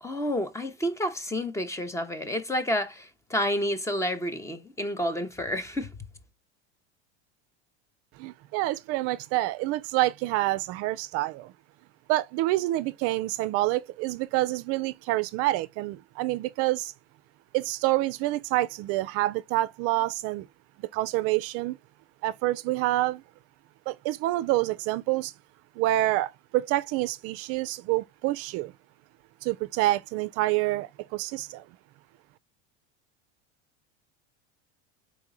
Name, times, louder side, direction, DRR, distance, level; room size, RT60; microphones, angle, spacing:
voice 1, 0.0-5.9, equal, 10° left, 0.6 m, -30 dB
voice 2, 8.2-11.5 12.1-16.9 17.5-20.5 20.8-21.8 22.2-23.2 23.9-25.3 25.8-28.7 29.4-31.6, right 17 dB, 50° right, 0.4 m, -27 dB
4.0 x 2.9 x 3.6 m
supercardioid pair, 115°, 30 cm